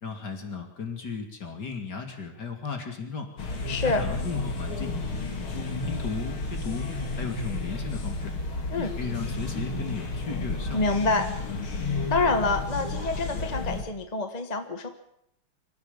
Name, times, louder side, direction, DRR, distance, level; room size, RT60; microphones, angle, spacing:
voice 1, 0.0-3.3 3.8-4.9 5.5-6.9 7.2-8.3 8.7-10.8, left 5 dB, 50° left, 4 dB, 3.4 m, -35 dB
sound 1, 3.4-13.8, left 3 dB, 75° left, 3.5 m, -32 dB
voice 2, 3.7-4.0 8.7-8.9 10.7-11.3 12.1-14.9, left 3 dB, 20° left, 7 dB, 1.3 m, -26 dB
26.0 x 14.5 x 7.2 m, 0.74 s
omnidirectional pair, 2.3 m